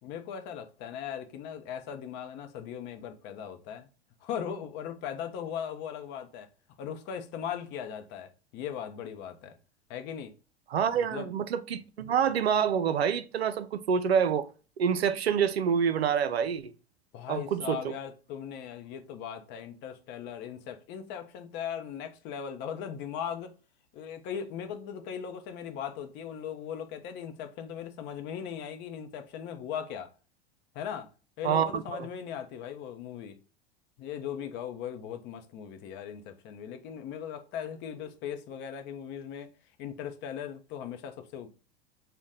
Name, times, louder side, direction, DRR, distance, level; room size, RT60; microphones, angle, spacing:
voice 1, 0.0-3.9 4.2-6.5 6.8-9.6 9.9-10.3 11.0-11.3 17.1-23.5 23.9-30.1 30.7-31.1 31.4-33.4 34.0-39.5 39.8-41.5, left 8 dB, 35° left, 0.6 m, -38 dB
voice 2, 10.7-14.5 14.8-16.7 17.3-17.9 31.4-32.1, right 7 dB, 80° right, 0.5 m, -27 dB
4.0 x 2.2 x 3.6 m
figure-of-eight pair, 85°, 31 cm